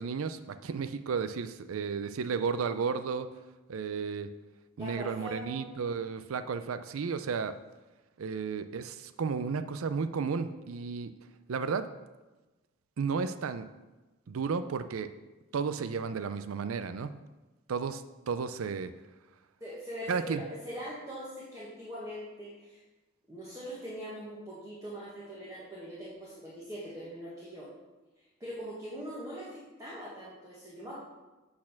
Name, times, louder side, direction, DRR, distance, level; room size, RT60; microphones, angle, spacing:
voice 1, 0.0-3.3 3.7-4.3 4.8-7.5 8.2-11.1 11.5-11.9 13.0-13.6 14.3-15.1 15.5-17.1 17.7-18.9 20.1-20.4, right 5 dB, 85° right, 12 dB, 0.4 m, -33 dB
voice 2, 4.8-5.7 19.6-22.8 23.3-27.7 28.4-31.0, equal, 15° right, -7 dB, 1.5 m, -42 dB
8.6 x 4.2 x 5.7 m, 1.1 s
head